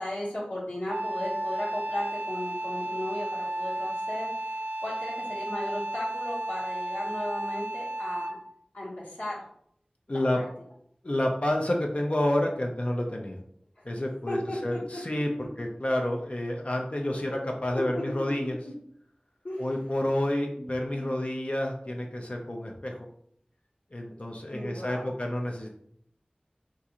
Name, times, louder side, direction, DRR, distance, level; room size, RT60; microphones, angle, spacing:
voice 1, 0.0-8.3 8.7-9.4 10.1-10.4 13.8-13.9 14.3-15.2 17.1-17.4 17.7-18.3 18.6-18.7 19.4-19.7 20.6-21.3 24.4-25.1, left 1 dB, 90° left, -11 dB, 1.2 m, -36 dB
Wind instrument woodwind instrument, 0.9-8.5, right 1 dB, 70° right, 0.4 m, -33 dB
voice 2, 10.1-10.4 11.0-13.4 13.8-18.6 19.6-23.1 23.9-25.8, left 1 dB, 45° left, 1 dB, 0.5 m, -29 dB
3.7 x 2.4 x 2.8 m, 0.68 s
wide cardioid pair, 40°, 3 cm